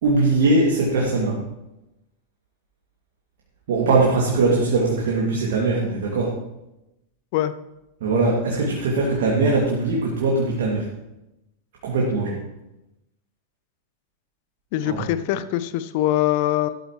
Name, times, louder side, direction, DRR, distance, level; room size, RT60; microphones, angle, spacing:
voice 1, 0.0-1.4 3.7-6.3 8.0-10.9 11.8-12.4 14.8-15.1, right 3 dB, 55° right, -3 dB, 2.3 m, -21 dB
voice 2, 14.7-16.7, left 13 dB, 50° left, 14 dB, 0.6 m, -23 dB
13.0 x 13.0 x 3.1 m, 0.94 s
figure-of-eight pair, 90°, 0 cm